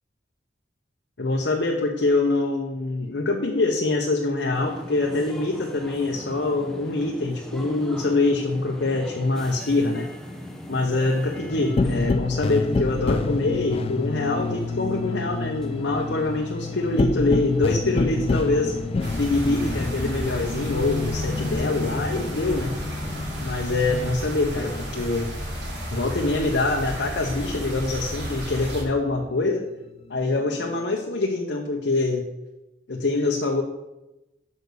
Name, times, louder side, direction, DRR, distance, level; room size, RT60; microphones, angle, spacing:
voice 1, 1.2-10.1 10.7-18.7 19.1-22.8 23.4-25.3 25.9-29.7 30.1-32.2 32.9-33.6, left 2 dB, 90° left, 0 dB, 0.9 m, -24 dB
sound 1, 4.5-23.4, equal, 5° left, 0.9 m, -39 dB
sound 2, 11.5-24.5 24.8-26.7 27.0-28.7 29.1-30.9, left 3 dB, 35° left, 0.3 m, -29 dB
sound 3, 19.0-28.8, left 1 dB, 90° right, 2.6 m, -31 dB
6.4 x 5.4 x 6.7 m, 0.97 s
head